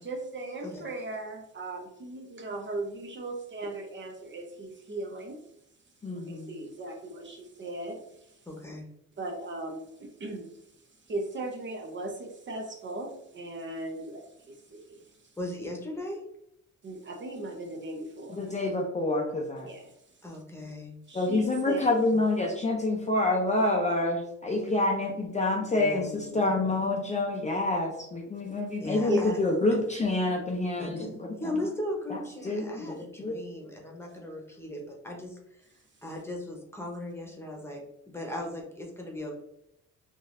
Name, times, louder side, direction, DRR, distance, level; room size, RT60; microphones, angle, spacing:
voice 1, 0.0-5.4 6.1-8.5 9.2-15.3 16.8-18.5 19.6-20.2 21.1-21.9 29.1-29.4, right 2 dB, 40° right, 3 dB, 0.7 m, -38 dB
voice 2, 6.0-6.5 18.3-19.7 21.1-31.5 32.1-32.9 33.2-33.3, left 2 dB, 25° left, 0 dB, 0.5 m, -27 dB
voice 3, 8.5-8.9 15.4-16.2 20.2-21.0 25.8-26.7 28.8-29.3 30.8-35.6 36.0-39.3, left 1 dB, 10° left, 0 dB, 1.0 m, -38 dB
3.9 x 2.6 x 2.5 m, 0.78 s
cardioid pair, 90°, 30 cm